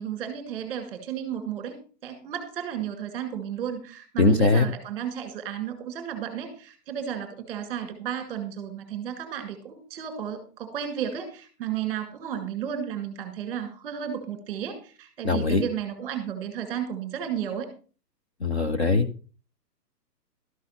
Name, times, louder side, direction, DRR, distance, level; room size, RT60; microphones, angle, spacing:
voice 1, 0.0-17.7, right 9 dB, 10° right, 7 dB, 1.8 m, -33 dB
voice 2, 4.2-4.7 15.2-15.6 18.4-19.1, left 3 dB, 40° left, 8 dB, 0.7 m, -21 dB
13.0 x 6.1 x 5.7 m, 0.38 s
hypercardioid pair, 180°, 49 cm